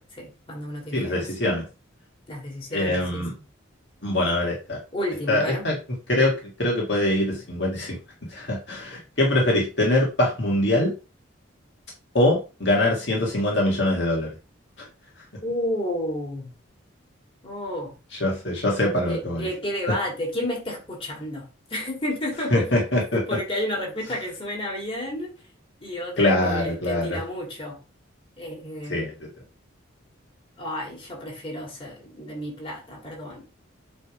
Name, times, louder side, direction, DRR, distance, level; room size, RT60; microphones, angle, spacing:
voice 1, 0.0-1.3 2.3-3.4 4.9-5.7 15.4-16.5 17.4-17.9 19.1-22.7 23.1-25.3 25.8-27.8 28.4-29.1 30.6-33.4, left 1 dB, 25° left, -2 dB, 2.8 m, -31 dB
voice 2, 0.9-1.6 2.7-3.3 4.0-4.8 5.3-5.7 6.1-8.0 8.3-10.9 12.1-14.3 14.8-14.9 18.1-19.5 22.5-23.2 26.2-27.2 28.9-29.3, left 1 dB, 55° left, -3 dB, 1.8 m, -23 dB
8.2 x 3.4 x 5.0 m, 0.32 s
head